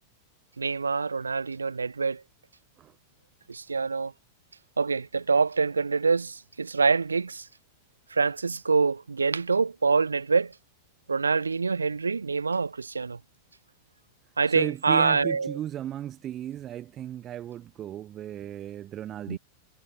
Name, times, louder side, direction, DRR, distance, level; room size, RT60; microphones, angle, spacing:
voice 1, 0.6-2.2 3.5-4.1 4.8-7.4 8.1-10.5 11.1-13.2 14.4-15.6 19.3-19.4, right 4 dB, 75° right, 2.1 m, -25 dB
voice 2, 14.5-19.4, right 11 dB, 30° right, 1.7 m, -35 dB
figure-of-eight pair, 90°, 0 cm